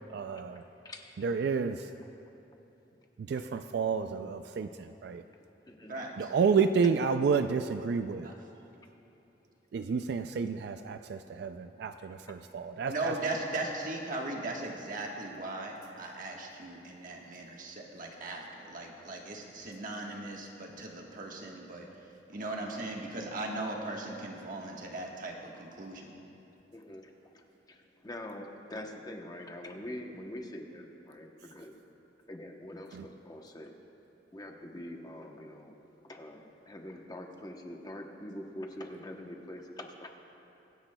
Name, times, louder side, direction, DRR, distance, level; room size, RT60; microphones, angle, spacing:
voice 1, 0.1-0.6 1.2-1.8 3.3-5.2 6.2-8.3 9.7-13.1 32.9-33.1, right 5 dB, 65° right, 9 dB, 0.3 m, -30 dB
voice 2, 5.4-6.0 12.0-12.4 26.7-27.4 27.7-31.7 32.3-33.7 34.3-35.7 36.0-40.2, left 1 dB, 20° left, 2 dB, 0.8 m, -44 dB
voice 3, 5.9-6.3 8.2-8.3 12.9-21.9 22.3-26.1, right 2 dB, 50° right, 0 dB, 1.3 m, -38 dB
24.0 x 10.0 x 2.2 m, 3.0 s
head